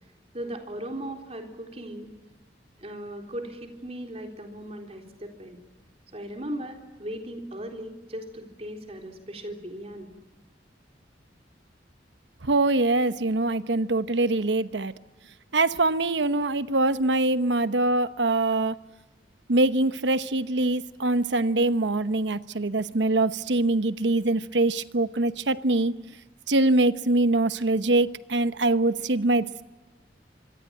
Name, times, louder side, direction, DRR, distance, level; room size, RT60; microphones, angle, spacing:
voice 1, 0.3-2.1 2.8-5.6 6.1-10.1, right 1 dB, 35° right, 3.8 m, -37 dB
voice 2, 12.4-14.9 15.5-18.7 19.5-25.9 26.5-29.5, right 2 dB, 80° right, 1.0 m, -23 dB
26.0 x 23.5 x 8.9 m
head